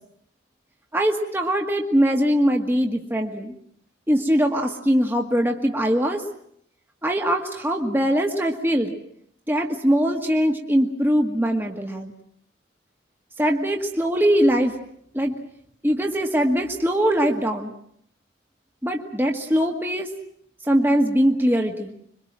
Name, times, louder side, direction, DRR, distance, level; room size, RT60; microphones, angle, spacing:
voice 1, 0.9-3.5 4.1-6.2 7.0-8.9 9.5-12.1 13.4-14.7 15.1-15.4 15.8-17.7 18.8-20.1 20.7-21.9, equal, 10° right, 2 dB, 1.9 m, -21 dB
26.5 x 23.5 x 7.5 m, 0.69 s
head